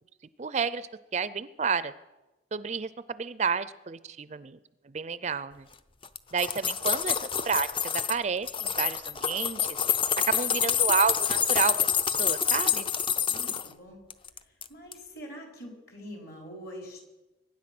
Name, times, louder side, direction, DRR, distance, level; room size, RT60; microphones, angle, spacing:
voice 1, 0.4-1.9 2.5-4.6 4.8-5.7 6.3-7.2 7.4-9.8 10.3-11.8 12.1-12.9, right 5 dB, 35° right, 15 dB, 0.4 m, -30 dB
sound 1, 6.0-8.2 8.5-13.7 14.1-14.7 14.9-15.0, left 8 dB, 25° left, 0.5 m, -27 dB
voice 2, 13.3-14.0 14.7-17.1, equal, 55° left, 1 dB, 4.2 m, -44 dB
23.5 x 9.8 x 6.0 m, 1.1 s
head